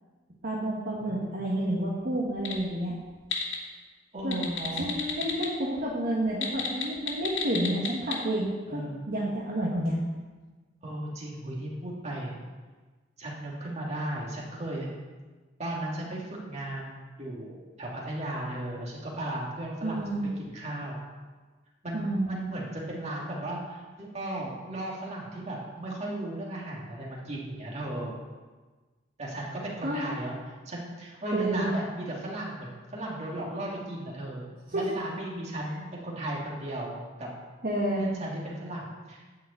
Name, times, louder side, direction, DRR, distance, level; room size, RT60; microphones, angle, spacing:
voice 1, 0.4-3.0 4.2-4.4 4.7-10.0 19.8-20.3 21.9-22.3 29.8-30.0 31.3-31.7 34.7-34.8 37.6-38.1, right 1 dB, 55° right, -5 dB, 1.4 m, -30 dB
voice 2, 1.0-2.1 4.1-4.9 8.7-9.0 10.8-12.4 13.2-14.9 15.6-21.0 21.8-28.1 29.2-30.3 30.7-34.4 34.7-37.3 38.0-39.2, right 1 dB, 35° right, -3 dB, 2.4 m, -36 dB
sound 1, 2.3-2.6 3.0-3.6 4.2-5.5 6.3-8.2, left 7 dB, 85° left, 1.9 m, -31 dB
10.0 x 5.0 x 8.1 m, 1.3 s
head